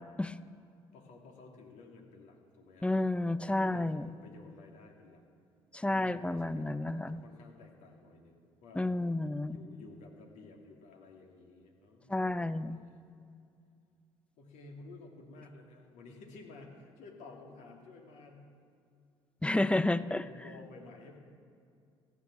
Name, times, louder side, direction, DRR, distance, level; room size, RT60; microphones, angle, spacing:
voice 1, 0.9-2.9 3.5-5.2 5.9-8.9 9.5-13.0 14.4-18.4 20.0-21.2, left 3 dB, 65° left, 1 dB, 2.7 m, -53 dB
voice 2, 2.8-4.1 5.7-7.2 8.7-9.6 12.1-12.8 19.4-20.2, left 2 dB, 10° left, 14 dB, 0.7 m, -31 dB
15.5 x 8.9 x 7.5 m, 2.4 s
hypercardioid pair, 55°, 13 cm